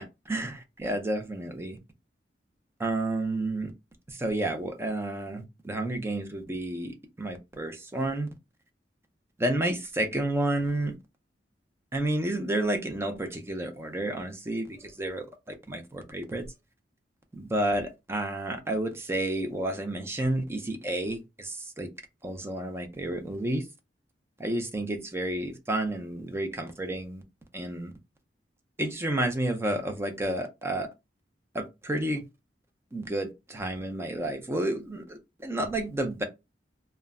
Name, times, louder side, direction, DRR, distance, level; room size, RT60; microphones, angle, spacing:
voice 1, 0.0-1.8 2.8-3.7 4.1-8.3 9.4-10.9 11.9-15.3 15.7-16.4 17.3-21.9 22.2-23.6 24.4-27.2 27.5-27.9 28.8-30.9 31.5-32.2 32.9-36.2, right 1 dB, 15° right, 0.4 m, -31 dB
2.2 x 2.0 x 3.4 m
head